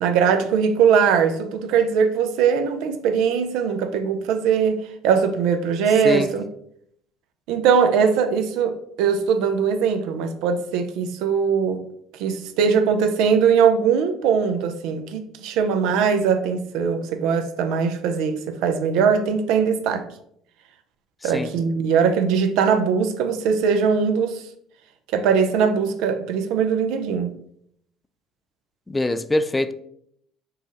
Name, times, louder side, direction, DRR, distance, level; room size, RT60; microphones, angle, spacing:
voice 1, 0.0-4.8 5.0-6.4 7.5-11.8 12.2-20.0 21.2-24.4 25.1-27.3, right 6 dB, 75° right, 7 dB, 0.6 m, -21 dB
voice 2, 28.9-29.7, left 1 dB, 15° left, 11 dB, 0.4 m, -23 dB
5.5 x 2.5 x 3.9 m, 0.69 s
hypercardioid pair, 70°, 0 cm